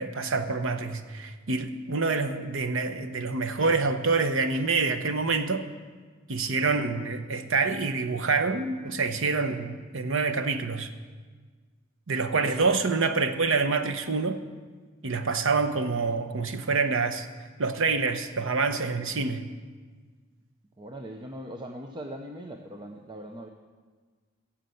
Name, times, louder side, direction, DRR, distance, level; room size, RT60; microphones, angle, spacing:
voice 1, 0.0-5.6 6.3-10.9 12.1-14.4 15.0-17.3 17.6-19.4, right 4 dB, 70° right, 8 dB, 0.9 m, -26 dB
voice 2, 12.3-12.7 20.8-23.5, equal, 20° right, 3 dB, 0.7 m, -40 dB
15.5 x 7.3 x 7.8 m, 1.5 s
head